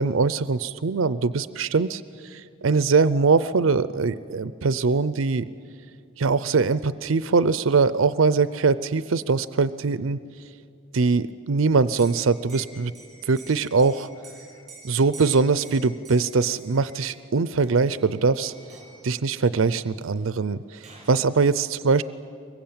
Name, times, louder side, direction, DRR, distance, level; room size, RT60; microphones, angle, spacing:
voice 1, 0.0-5.4 6.2-10.2 10.9-12.9 13.2-14.1 14.8-18.5 19.0-22.0, right 4 dB, 85° right, 15 dB, 0.5 m, -22 dB
Liquid, 11.8-17.2 17.6-18.1 18.4-19.0 20.2-20.3 20.5-21.2, right 3 dB, 35° right, 6.6 m, -47 dB
24.5 x 22.0 x 8.8 m, 2.5 s
head